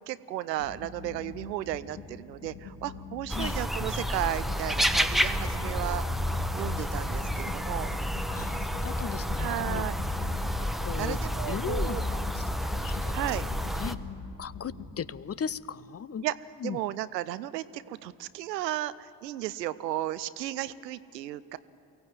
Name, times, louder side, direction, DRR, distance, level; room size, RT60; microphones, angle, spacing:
voice 1, 0.1-6.0 6.6-7.9 9.4-10.0 11.0-12.0 13.1-13.5 16.2-16.3 16.6-21.6, right 14 dB, 85° right, 16 dB, 0.6 m, -34 dB
sound 1, 0.6-15.2, left 5 dB, 70° left, 3.0 m, -44 dB
sound 2, 3.3-13.9, equal, ahead, 1.0 m, -30 dB
voice 2, 8.3-9.9 10.8-11.2 11.5-12.5 12.8-13.2 13.8-14.0 14.4-16.3 16.6-16.8, left 7 dB, 30° left, 18 dB, 0.6 m, -37 dB
23.5 x 16.5 x 8.1 m, 2.7 s
figure-of-eight pair, 40°, 48 cm